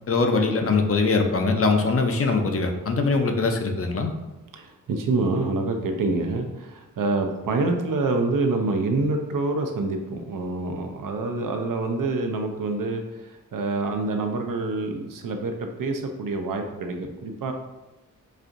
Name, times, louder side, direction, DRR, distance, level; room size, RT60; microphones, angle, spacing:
voice 1, 0.1-4.1, left 3 dB, 45° left, 4 dB, 0.5 m, -22 dB
voice 2, 4.5-13.0 13.5-15.5 15.8-17.5, right 3 dB, 70° right, 4 dB, 0.5 m, -26 dB
4.2 x 2.5 x 2.5 m, 1.1 s
wide cardioid pair, 75°, 34 cm